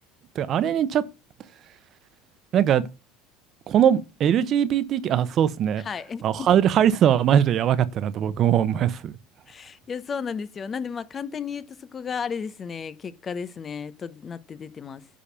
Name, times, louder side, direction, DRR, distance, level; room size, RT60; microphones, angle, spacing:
voice 1, 0.3-1.0 2.5-2.9 3.7-5.8 6.2-9.1, right 9 dB, 50° right, 1.0 m, -21 dB
voice 2, 5.8-6.5 9.5-15.1, left 6 dB, 30° left, 0.9 m, -34 dB
10.5 x 4.2 x 7.0 m
supercardioid pair, 100°, 0 cm